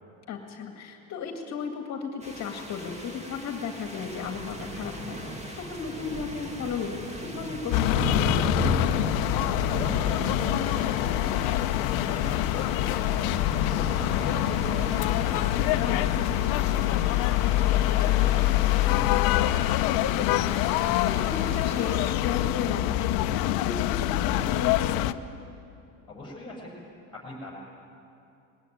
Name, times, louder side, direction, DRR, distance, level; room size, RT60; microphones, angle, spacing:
voice 1, 0.3-5.2 5.6-8.5 15.8-16.1 20.1-25.1, left 5 dB, 45° left, 5 dB, 2.0 m, -35 dB
sound 1, 2.2-22.1, right 1 dB, 20° right, 2.0 m, -37 dB
sound 2, 7.7-25.1, left 14 dB, 70° left, 0.8 m, -25 dB
voice 2, 9.4-13.3 13.7-17.0 17.4-19.7 26.1-26.7 27.1-27.5, left 2 dB, 15° left, -3 dB, 6.0 m, -40 dB
20.5 x 16.5 x 9.3 m, 2.7 s
cardioid pair, 140°, 37 cm